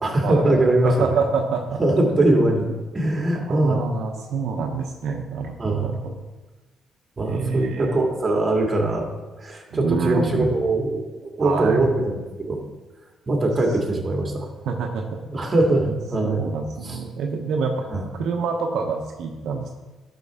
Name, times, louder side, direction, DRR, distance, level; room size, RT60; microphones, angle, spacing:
voice 1, 0.0-1.1 1.8-2.7 2.9-3.9 5.6-5.9 7.2-9.1 9.4-12.6 13.3-14.5 15.3-16.4 16.8-17.0 17.9-18.0, right 2 dB, 25° right, 0 dB, 2.2 m, -21 dB
voice 2, 0.8-1.8 3.3-6.1 7.2-8.1 9.7-10.6 11.4-11.9 14.6-15.2 16.2-17.8 18.1-19.7, right 5 dB, 80° right, 1 dB, 0.9 m, -27 dB
12.0 x 6.2 x 3.7 m, 1.2 s
cardioid pair, 90°, 0 cm